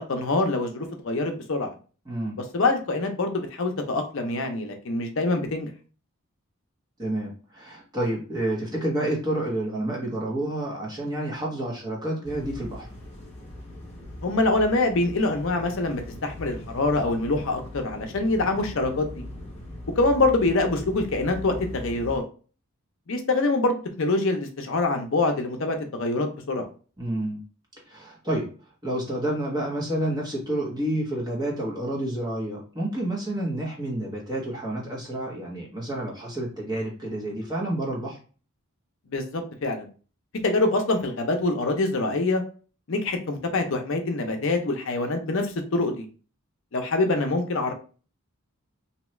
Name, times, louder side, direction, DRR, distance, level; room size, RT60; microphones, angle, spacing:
voice 1, 0.1-1.7 2.5-5.7 14.2-19.2 20.0-22.2 23.1-26.6 39.1-39.9 40.4-42.4 42.9-46.1 46.7-47.7, left 2 dB, 60° left, 5 dB, 0.6 m, -25 dB
voice 2, 2.1-2.4 7.0-12.9 27.0-27.4 27.9-28.5 28.8-38.2, right 1 dB, 20° right, -3 dB, 0.9 m, -29 dB
sound 1, 12.2-22.2, left 1 dB, 30° left, 1.0 m, -40 dB
2.8 x 2.3 x 3.1 m, 0.38 s
head